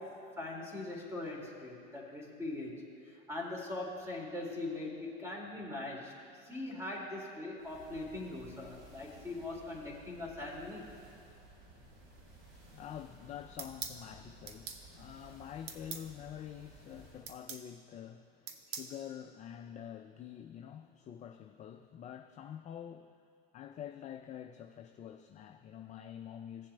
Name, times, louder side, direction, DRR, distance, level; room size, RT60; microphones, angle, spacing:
voice 1, 0.0-6.1 6.4-10.9, left 2 dB, 10° right, -1 dB, 2.0 m, -41 dB
sound 1, 7.6-17.4, right 2 dB, 70° right, 2.3 m, -57 dB
voice 2, 12.7-23.1 23.5-26.7, left 9 dB, 25° left, 4 dB, 0.4 m, -47 dB
sound 2, 13.6-14.0 14.5-14.8 15.7-16.1 17.3-17.7 18.5-18.9, right 6 dB, 50° right, 1.0 m, -42 dB
17.0 x 7.2 x 2.2 m, 2.7 s
hypercardioid pair, 100°, 30 cm